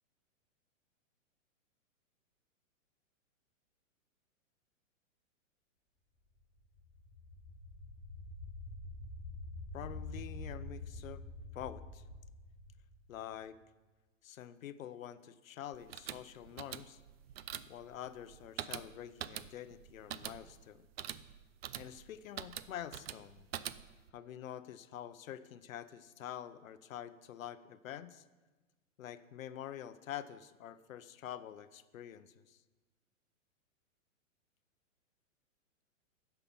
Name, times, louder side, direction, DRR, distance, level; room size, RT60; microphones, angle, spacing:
sound 1, 6.6-13.4, left 2 dB, 5° right, 1.6 m, -47 dB
voice 1, 9.7-11.2 11.5-12.0 13.1-13.6 14.2-17.0 17.7-20.9 21.7-23.5 24.1-28.2 29.0-32.6, left 10 dB, 80° left, 13 dB, 0.8 m, -46 dB
sound 2, 15.7-24.1, right 11 dB, 50° right, 0.5 m, -45 dB
15.5 x 5.8 x 5.4 m, 1.2 s
hypercardioid pair, 160°, 40 cm